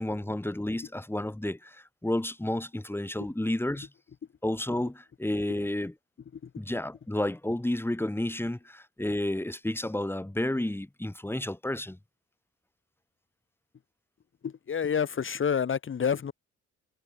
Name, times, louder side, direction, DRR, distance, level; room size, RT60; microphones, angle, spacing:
voice 1, 0.0-3.9 4.4-5.9 6.6-12.0, left 1 dB, 5° left, 5.5 m, -31 dB
voice 2, 14.4-16.3, left 7 dB, 40° left, 1.9 m, -28 dB
cardioid pair, 90°, 30 cm